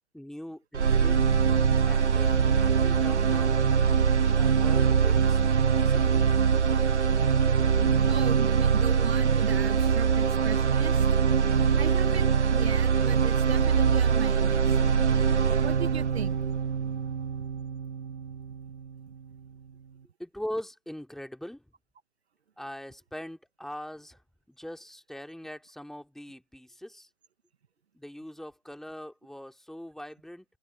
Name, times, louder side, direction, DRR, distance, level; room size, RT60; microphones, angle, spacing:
voice 1, 0.1-1.2 1.8-3.6 4.4-6.1 20.2-21.6 22.6-24.2 24.5-27.1 27.9-30.5, equal, ahead, 3.0 m, -41 dB
sound 1, 0.7-18.8, right 6 dB, 90° right, 0.7 m, -23 dB
voice 2, 8.1-11.0 11.8-14.8 15.6-16.4, right 7 dB, 65° right, 1.4 m, -37 dB
figure-of-eight pair, 125°, 34 cm